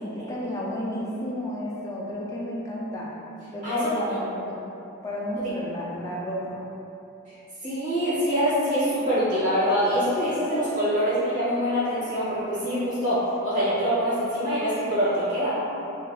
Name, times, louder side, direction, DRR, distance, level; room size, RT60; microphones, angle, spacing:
voice 1, 0.0-3.1 3.5-4.6 5.0-6.6, equal, 15° left, -5 dB, 0.4 m, -32 dB
voice 2, 7.6-15.5, equal, 35° right, -12 dB, 1.4 m, -24 dB
3.6 x 2.8 x 2.3 m, 2.9 s
head